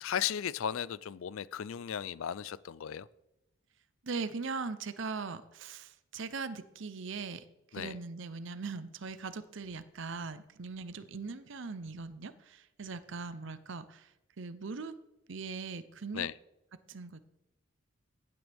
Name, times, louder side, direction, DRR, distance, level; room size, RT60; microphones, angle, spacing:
voice 1, 0.0-3.1 7.7-8.0 16.1-16.3, left 9 dB, 75° left, 20 dB, 0.4 m, -35 dB
voice 2, 4.0-7.4 7.7-14.1 14.4-14.9 15.3-16.3 16.9-17.2, right 4 dB, 60° right, 13 dB, 0.7 m, -40 dB
15.5 x 9.3 x 3.5 m, 0.93 s
head